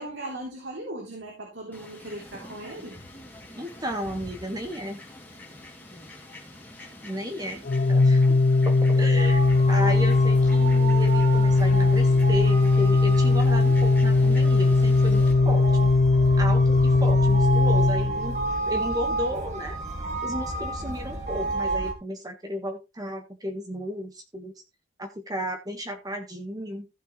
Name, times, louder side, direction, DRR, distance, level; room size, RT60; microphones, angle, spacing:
voice 1, 0.0-3.0, right 1 dB, 70° right, -1 dB, 3.4 m, -38 dB
Fowl, 1.7-15.3, left 1 dB, 10° left, 2.6 m, -46 dB
voice 2, 3.6-5.0 7.0-7.6 7.9-8.4 8.6-9.4 9.7-15.9 16.4-19.8 20.2-24.5 25.0-26.9, equal, 20° right, 4 dB, 1.5 m, -33 dB
Organ, 7.6-18.5, left 3 dB, 50° left, 0.4 m, -19 dB
sound 1, 9.2-21.9, right 2 dB, 40° right, 2.1 m, -31 dB
15.0 x 6.7 x 3.2 m, 0.25 s
head